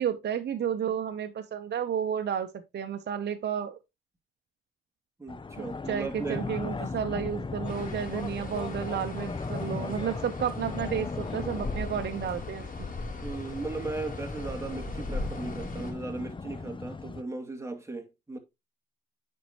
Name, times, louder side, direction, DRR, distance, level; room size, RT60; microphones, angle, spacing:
voice 1, 0.0-3.8 5.6-12.9, right 8 dB, 60° right, 0.8 m, -32 dB
voice 2, 5.2-6.5 13.2-18.4, right 3 dB, 15° right, 2.5 m, -37 dB
sound 1, 5.3-17.2, left 4 dB, 25° left, 0.6 m, -37 dB
sound 2, 7.6-15.9, left 2 dB, 45° left, 3.9 m, -40 dB
9.1 x 5.4 x 2.9 m
cardioid pair, 70°, 20 cm